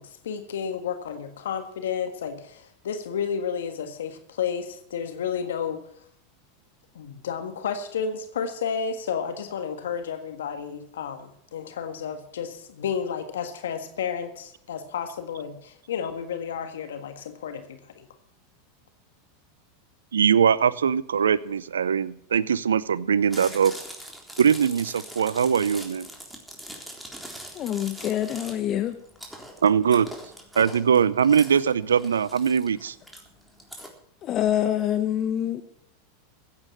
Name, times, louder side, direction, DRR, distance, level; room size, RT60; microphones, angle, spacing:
voice 1, 0.0-5.8 6.9-18.1, left 7 dB, 80° left, 8 dB, 1.6 m, -31 dB
voice 2, 20.1-23.7 24.4-26.1 29.6-30.1 30.6-32.9, right 7 dB, 90° right, 19 dB, 0.7 m, -21 dB
Chewing mastication, 23.2-33.9, equal, ahead, 3.7 m, -42 dB
voice 3, 27.5-29.0 34.2-35.6, left 11 dB, 40° left, 9 dB, 1.1 m, -26 dB
16.0 x 8.7 x 7.6 m, 0.69 s
hypercardioid pair, 100°, 0 cm